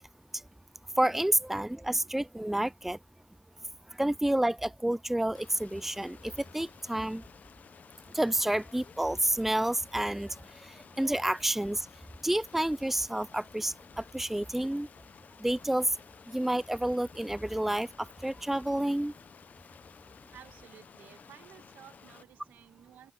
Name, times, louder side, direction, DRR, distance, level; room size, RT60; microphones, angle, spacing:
voice 1, 1.0-3.0 4.0-7.2 8.1-10.3 11.0-11.8 12.2-13.7 14.1-14.9 15.4-15.9 16.3-17.9 18.2-19.1, right 1 dB, 10° right, 0.6 m, -29 dB
Stream, 5.3-22.2, left 6 dB, 60° left, 1.2 m, -54 dB
voice 2, 20.3-23.1, right 10 dB, 80° right, 1.9 m, -54 dB
supercardioid pair, 45°, 3 cm